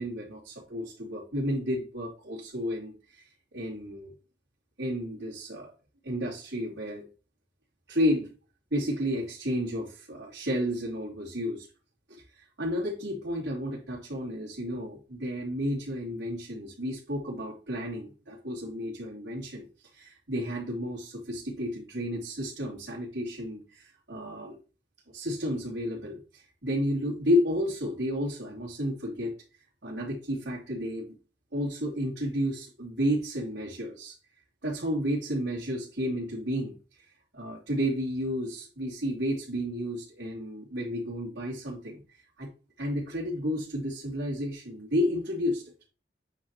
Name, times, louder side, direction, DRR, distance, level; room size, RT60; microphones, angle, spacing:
voice 1, 0.0-4.1 4.8-5.7 6.0-7.0 7.9-8.3 8.7-11.7 12.1-19.7 19.9-24.6 25.1-29.3 29.8-31.1 31.5-34.2 34.6-36.8 37.3-42.0 42.4-42.5 42.8-45.6, equal, 85° right, -6 dB, 3.0 m, -32 dB
9.1 x 5.7 x 3.0 m, 0.34 s
head